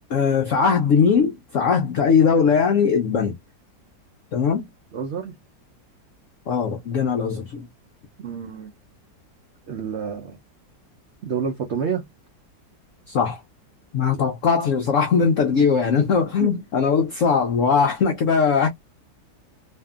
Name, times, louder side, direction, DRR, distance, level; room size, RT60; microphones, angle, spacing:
voice 1, 0.1-3.4 4.3-4.7 6.5-7.7 13.1-13.4 13.9-18.7, left 6 dB, 80° left, 0.6 m, -20 dB
voice 2, 4.9-5.3 8.2-8.7 9.7-10.4 11.2-12.0 15.6-15.7 15.9-16.1 16.4-16.5, right 6 dB, 90° right, 0.6 m, -28 dB
2.7 x 2.6 x 2.3 m
omnidirectional pair, 2.0 m